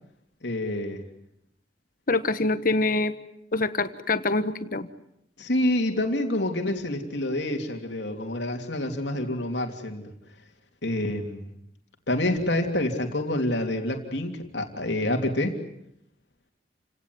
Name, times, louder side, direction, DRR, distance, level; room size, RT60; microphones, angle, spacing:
voice 1, 0.4-1.0 5.4-10.1 10.8-11.5 12.1-15.5, left 1 dB, 80° left, 3 dB, 3.2 m, -27 dB
voice 2, 2.1-3.1 3.5-4.9, left 3 dB, 55° left, 11 dB, 1.4 m, -25 dB
29.5 x 18.0 x 9.6 m, 0.78 s
head